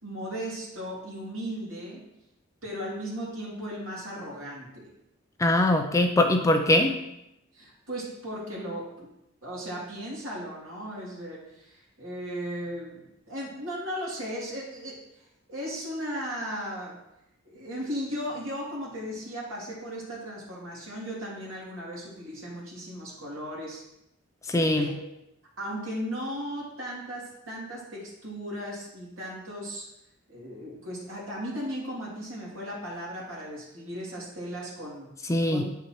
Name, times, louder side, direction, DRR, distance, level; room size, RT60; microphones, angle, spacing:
voice 1, 0.0-2.1 2.6-4.9 7.5-9.1 9.4-15.0 15.5-17.0 17.4-23.8 24.8-25.0 25.6-29.9 30.3-35.1 35.5-35.6, equal, 75° right, -5 dB, 2.7 m, -36 dB
voice 2, 5.4-7.0 24.5-24.9 35.3-35.6, left 1 dB, 15° left, 5 dB, 0.4 m, -22 dB
8.5 x 5.8 x 3.0 m, 0.85 s
head